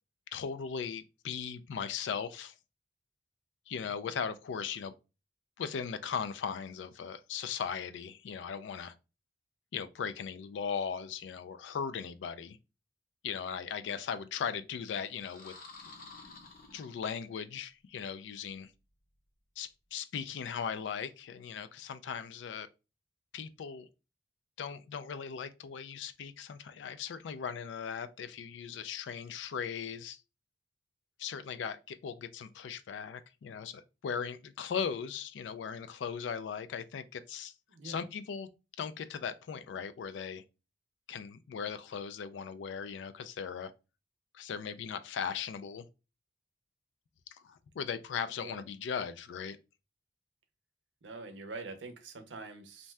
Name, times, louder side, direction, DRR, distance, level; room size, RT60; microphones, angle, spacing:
voice 1, 0.3-2.5 3.7-4.9 5.6-8.9 9.7-12.6 13.2-15.5 16.7-18.7 19.6-22.7 23.3-23.9 24.6-30.2 31.2-37.5 37.8-38.5 38.8-40.4 41.1-43.7 44.3-45.9 47.3-49.6, left 7 dB, 80° left, 0.3 m, -38 dB
sound 1, 15.1-17.5, left 3 dB, 55° left, 0.7 m, -51 dB
voice 2, 37.7-38.0 48.4-48.6 51.0-52.9, right 3 dB, 90° right, 0.6 m, -45 dB
2.6 x 2.2 x 3.2 m
head